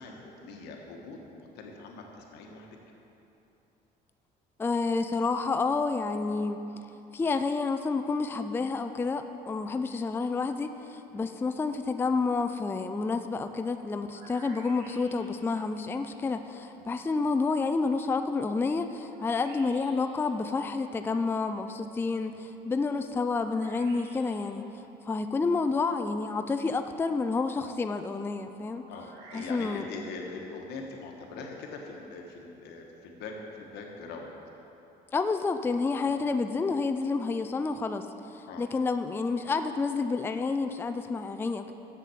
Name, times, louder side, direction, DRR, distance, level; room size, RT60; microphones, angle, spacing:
voice 1, 0.0-2.7 11.1-11.2 16.7-16.9 28.9-34.4 36.0-36.2 38.5-38.7, left 3 dB, 85° left, 1 dB, 1.3 m, -42 dB
voice 2, 4.6-6.6 7.1-24.7 25.1-28.8 29.3-29.8 35.1-41.7, left 4 dB, 15° left, 8 dB, 0.3 m, -29 dB
sound 1, 13.9-15.5 19.0-20.2 23.3-24.6 28.7-30.0, right 2 dB, 80° right, 1.7 m, -52 dB
7.4 x 7.3 x 7.0 m, 3.0 s
cardioid pair, 110°, 17 cm